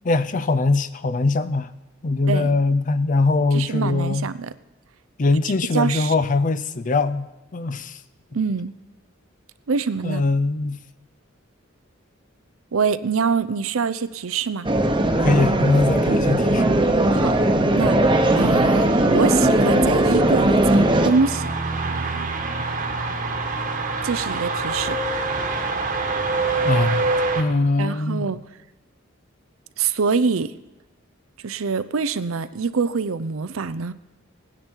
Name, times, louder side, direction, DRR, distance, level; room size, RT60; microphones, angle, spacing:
voice 1, 0.1-1.7 2.0-4.3 5.2-7.3 7.5-8.0 10.0-10.8 15.2-16.8 26.6-28.4, left 3 dB, 40° left, 13 dB, 0.5 m, -22 dB
voice 2, 2.3-2.6 3.5-4.5 5.7-6.1 8.3-8.7 9.7-10.2 12.7-14.7 17.1-17.3 17.8-21.5 24.0-25.0 27.8-28.4 29.8-30.5 31.4-33.9, right 5 dB, 85° right, 14 dB, 0.6 m, -24 dB
sound 1, 14.6-21.1, right 1 dB, 25° right, 1.0 m, -18 dB
sound 2, 18.1-27.4, right 3 dB, 40° right, 1.3 m, -26 dB
18.0 x 9.8 x 4.6 m, 1.1 s
head